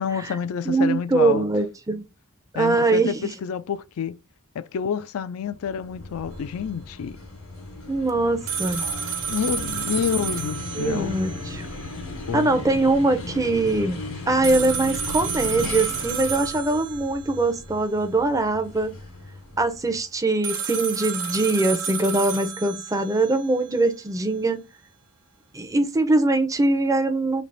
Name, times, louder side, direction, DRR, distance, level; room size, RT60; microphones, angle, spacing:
voice 1, 0.0-1.5 2.5-4.2 4.5-7.2 9.3-11.2 12.3-12.6, left 7 dB, 70° left, 0.4 m, -28 dB
voice 2, 0.7-2.0 2.6-3.3 7.9-8.8 10.8-11.7 12.3-18.9 19.6-24.6 25.5-27.4, right 2 dB, 15° right, 0.5 m, -22 dB
sound 1, 5.5-20.0, left 2 dB, 85° left, 1.5 m, -36 dB
sound 2, 8.5-11.5 11.8-11.9 14.4-17.5 20.4-23.5, right 6 dB, 80° right, 0.8 m, -31 dB
3.3 x 2.8 x 4.0 m
head